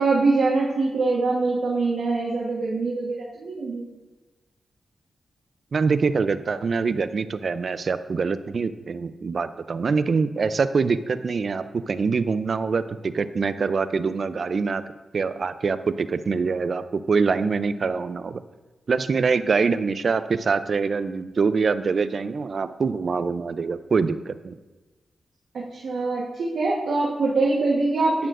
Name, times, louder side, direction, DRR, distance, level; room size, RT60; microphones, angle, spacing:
voice 1, 0.0-3.8 25.5-28.3, right 3 dB, 80° right, -4 dB, 1.3 m, -23 dB
voice 2, 5.7-14.8 15.1-18.4 18.9-24.5, right 5 dB, 60° right, 13 dB, 0.4 m, -24 dB
10.5 x 9.0 x 2.6 m, 1.2 s
cardioid pair, 50°, 0 cm